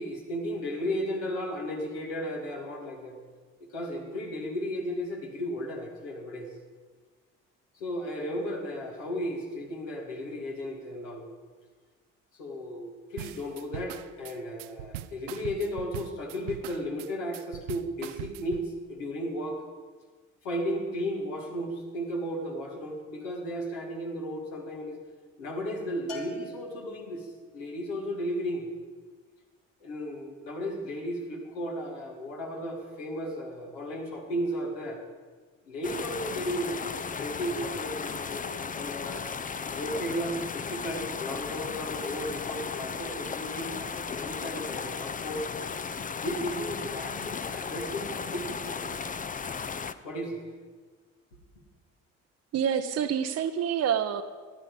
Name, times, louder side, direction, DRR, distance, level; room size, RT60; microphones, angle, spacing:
voice 1, 0.0-3.2 3.7-6.5 7.7-11.2 12.4-19.6 20.4-25.0 25.4-28.7 29.8-35.0 35.6-39.2 39.7-45.4 46.2-49.2 50.0-50.5, equal, 75° left, 0 dB, 2.4 m, -34 dB
sound 1, 13.2-18.7, right 13 dB, 80° right, 0.5 m, -40 dB
Bell, 26.1-27.5, equal, 55° left, 2.5 m, -43 dB
sound 2, 35.8-49.9, left 5 dB, 20° left, 0.6 m, -35 dB
voice 2, 52.5-54.2, right 8 dB, 45° right, 7 dB, 0.8 m, -27 dB
14.5 x 11.0 x 5.4 m, 1.4 s
figure-of-eight pair, 50°, 37 cm